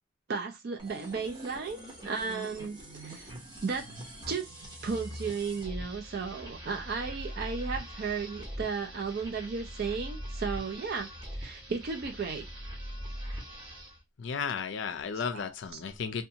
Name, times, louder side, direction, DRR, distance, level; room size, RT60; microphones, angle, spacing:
voice 1, 0.3-1.8 2.0-3.3 3.6-3.9 4.3-4.5 4.8-11.1 11.4-12.5 15.3-15.4, right 5 dB, 50° right, 0.4 m, -34 dB
sound 1, 0.8-14.0, equal, 20° right, 0.7 m, -42 dB
voice 2, 14.2-16.2, left 6 dB, 60° left, 0.4 m, -34 dB
2.5 x 2.3 x 2.7 m
head